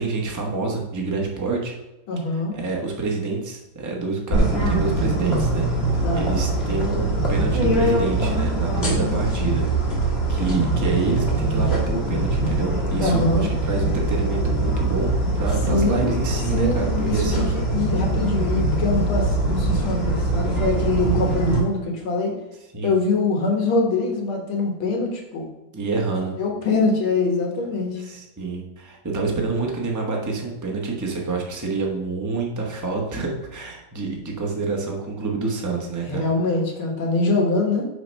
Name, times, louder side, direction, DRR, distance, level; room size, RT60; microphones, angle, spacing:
voice 1, 0.0-1.7 2.3-5.7 6.1-9.6 10.0-17.5 22.7-22.9 25.7-26.3 28.0-36.2, right 3 dB, 15° right, -1 dB, 0.7 m, -27 dB
voice 2, 2.1-2.6 6.0-6.3 13.0-13.5 15.7-16.1 16.5-22.3 22.8-25.5 26.4-28.0 36.1-37.9, left 3 dB, 85° left, 1 dB, 2.2 m, -23 dB
sound 1, 4.3-21.6, right 2 dB, 30° left, 1.8 m, -22 dB
6.3 x 4.0 x 5.3 m, 0.94 s
omnidirectional pair, 2.2 m